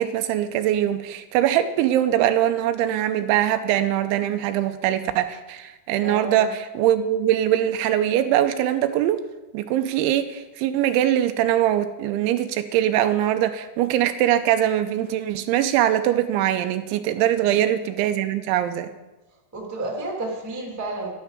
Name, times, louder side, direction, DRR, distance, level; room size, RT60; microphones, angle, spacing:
voice 1, 0.0-9.2 9.5-18.9, right 11 dB, 85° right, 9 dB, 3.0 m, -22 dB
voice 2, 6.0-6.4 17.4-17.6 19.5-21.1, right 2 dB, 5° right, -2 dB, 1.2 m, -31 dB
12.5 x 12.0 x 5.0 m, 1.1 s
omnidirectional pair, 5.4 m